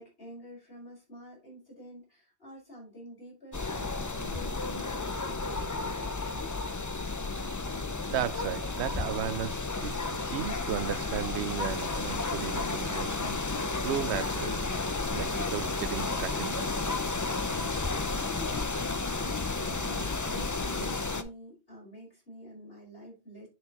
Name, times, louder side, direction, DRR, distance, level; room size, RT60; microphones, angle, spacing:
voice 1, 0.0-6.6 17.4-18.7 19.2-23.5, equal, 60° left, 5.5 m, -48 dB
sound 1, 3.5-21.2, left 3 dB, 20° left, 0.5 m, -32 dB
voice 2, 8.1-13.5 13.8-14.7 15.1-16.7, right 11 dB, 80° right, 0.9 m, -35 dB
10.5 x 6.2 x 3.0 m
omnidirectional pair, 1.1 m